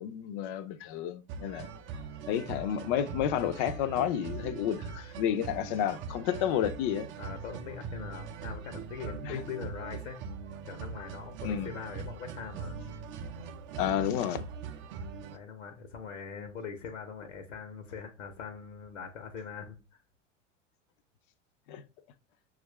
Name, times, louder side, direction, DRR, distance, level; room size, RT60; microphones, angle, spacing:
voice 1, 0.0-1.7 2.3-7.1 9.2-9.4 11.4-11.7 13.8-14.5 21.7-21.8, left 10 dB, 45° left, 0.5 m, -31 dB
sound 1, 1.3-15.4, right 5 dB, 30° right, 0.5 m, -41 dB
voice 2, 7.2-10.2 10.6-12.8 15.3-19.8, left 6 dB, 70° left, 0.9 m, -42 dB
6.1 x 2.4 x 3.1 m
figure-of-eight pair, 85°, 38 cm